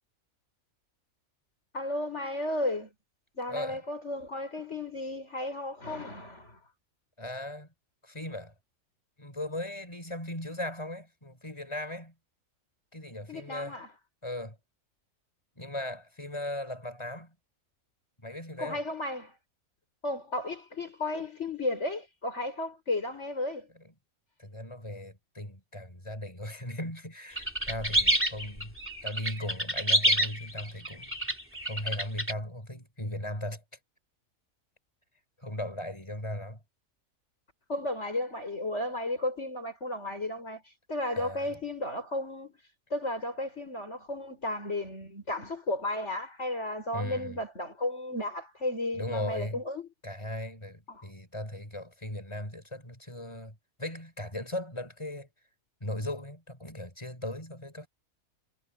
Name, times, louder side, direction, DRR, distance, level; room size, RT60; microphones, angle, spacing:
voice 1, 1.7-2.9 3.3-6.6 13.3-13.9 18.6-19.4 20.0-23.7 37.7-40.6 40.9-42.5 42.9-49.9 50.9-51.1, left 1 dB, 55° left, 5.7 m, -34 dB
voice 2, 3.5-3.8 7.2-7.7 8.0-8.5 9.2-12.1 12.9-13.8 14.2-14.6 15.6-17.3 18.2-18.8 24.4-28.8 29.0-31.1 31.7-33.6 35.4-36.6 41.2-41.5 46.9-47.4 48.9-49.6 50.0-55.3 55.8-57.9, left 1 dB, 20° left, 5.9 m, -38 dB
sound 1, 27.4-32.3, right 1 dB, 10° right, 3.3 m, -27 dB
omnidirectional pair, 1.5 m